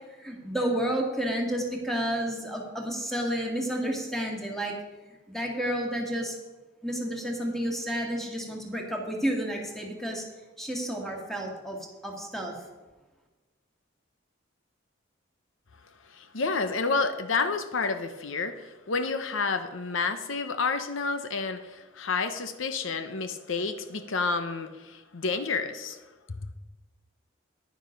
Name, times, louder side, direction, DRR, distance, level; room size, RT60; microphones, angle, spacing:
voice 1, 0.1-4.7 5.3-6.4 6.8-10.2 10.6-12.6, right 1 dB, ahead, 0 dB, 2.1 m, -31 dB
voice 2, 16.1-26.0, left 4 dB, 75° left, 9 dB, 0.8 m, -30 dB
10.5 x 9.9 x 5.2 m, 1.2 s
head